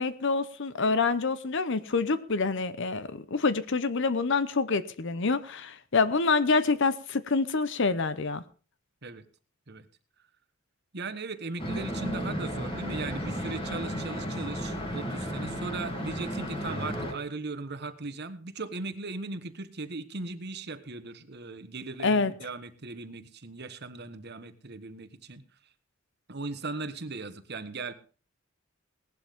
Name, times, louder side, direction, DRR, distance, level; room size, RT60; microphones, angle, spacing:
voice 1, 0.0-8.4 22.0-22.3, left 4 dB, 60° left, 14 dB, 0.8 m, -26 dB
voice 2, 10.9-25.4 26.3-27.9, right 3 dB, 50° right, 10 dB, 1.3 m, -38 dB
sound 1, 11.6-17.1, equal, 25° left, 3.0 m, -34 dB
18.0 x 12.0 x 3.6 m, 0.39 s
head